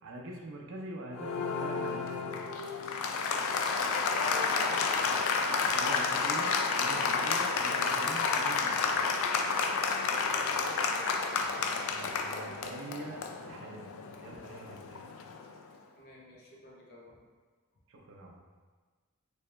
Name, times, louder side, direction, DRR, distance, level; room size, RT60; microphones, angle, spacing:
voice 1, 0.0-2.3 5.6-9.0 11.9-13.9 14.2-15.0 17.9-18.4, right 2 dB, 60° right, 0 dB, 0.5 m, -44 dB
Applause, 1.1-15.5, left 4 dB, 65° left, 0.3 m, -31 dB
voice 2, 3.3-4.8 10.1-10.9 15.9-17.3, equal, 50° left, -3 dB, 0.8 m, -50 dB
3.3 x 2.9 x 3.3 m, 1.4 s
head